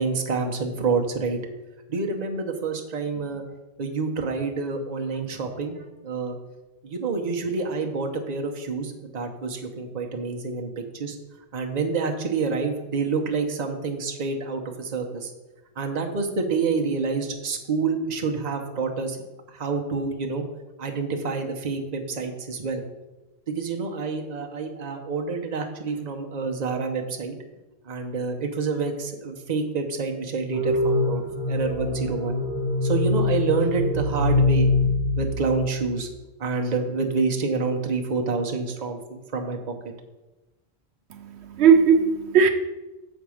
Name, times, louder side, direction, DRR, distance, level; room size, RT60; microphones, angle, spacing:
voice 1, 0.0-1.4 1.9-3.4 3.8-6.4 6.8-11.2 11.5-15.3 15.8-19.2 19.5-20.4 20.8-22.8 23.5-27.3 27.8-32.4 32.8-36.1 36.4-39.7, right 4 dB, 40° right, 2 dB, 0.9 m, -28 dB
sound 1, 30.5-35.9, left 2 dB, 85° left, 2.9 m, -24 dB
voice 2, 41.2-42.5, right 6 dB, 80° right, 6 dB, 0.9 m, -18 dB
7.1 x 4.6 x 6.3 m, 1.1 s
omnidirectional pair, 1.1 m